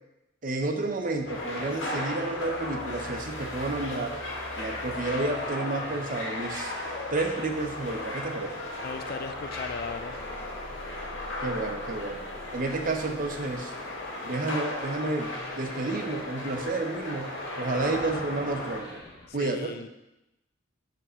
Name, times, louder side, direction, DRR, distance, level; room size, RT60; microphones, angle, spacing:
voice 1, 0.4-4.2 4.6-6.7 7.1-8.5 11.4-12.2 12.5-13.7 14.2-19.0 19.3-19.7, right 2 dB, 45° right, 5 dB, 0.8 m, -31 dB
sound 1, 0.9-19.3, left 1 dB, 25° left, 2.4 m, -49 dB
sound 2, 1.3-18.8, left 2 dB, 85° left, 1.8 m, -36 dB
voice 2, 8.8-10.2 19.3-19.9, left 5 dB, 55° left, 10 dB, 0.4 m, -37 dB
5.5 x 5.3 x 5.5 m, 0.92 s
head